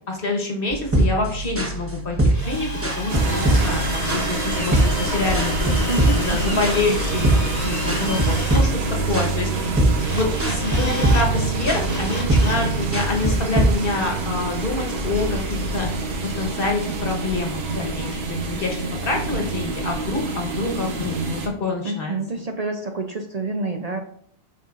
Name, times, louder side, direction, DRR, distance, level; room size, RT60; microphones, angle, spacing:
voice 1, 0.1-2.2 2.5-2.7 3.0-8.7 9.1-9.7 10.1-15.9 16.4-22.2, left 3 dB, 60° left, 1 dB, 1.4 m, -26 dB
sound 1, 0.7-13.7, right 1 dB, 15° right, 0.9 m, -23 dB
Drill, 2.3-8.6 10.0-11.3 11.6-12.7, equal, 15° left, 1.2 m, -32 dB
sound 2, 3.1-21.5, right 3 dB, 75° right, 1.2 m, -27 dB
voice 2, 5.9-6.6 21.8-24.0, right 2 dB, 45° right, 4 dB, 0.6 m, -28 dB
7.6 x 5.3 x 2.5 m, 0.64 s
omnidirectional pair, 1.1 m